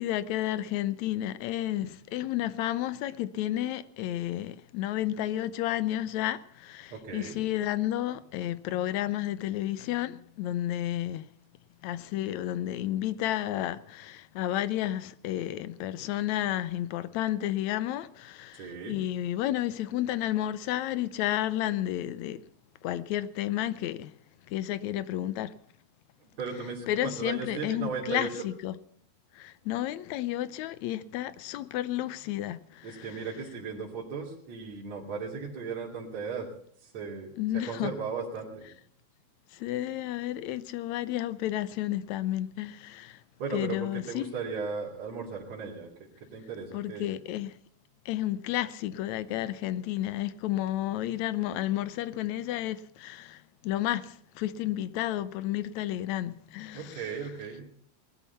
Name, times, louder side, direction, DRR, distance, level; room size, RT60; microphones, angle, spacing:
voice 1, 0.0-11.3 11.8-22.4 22.8-24.1 24.5-25.5 26.9-28.8 29.3-33.1 37.4-37.9 39.5-43.2 43.5-44.3 46.7-47.6 48.1-57.0, left 13 dB, 75° left, 2.0 m, -31 dB
voice 2, 6.9-7.4 18.5-19.0 26.2-28.5 32.8-36.5 36.8-38.7 43.4-45.9 46.3-47.1 56.7-57.7, right 5 dB, 65° right, 3.9 m, -36 dB
19.0 x 13.0 x 5.6 m
omnidirectional pair, 3.4 m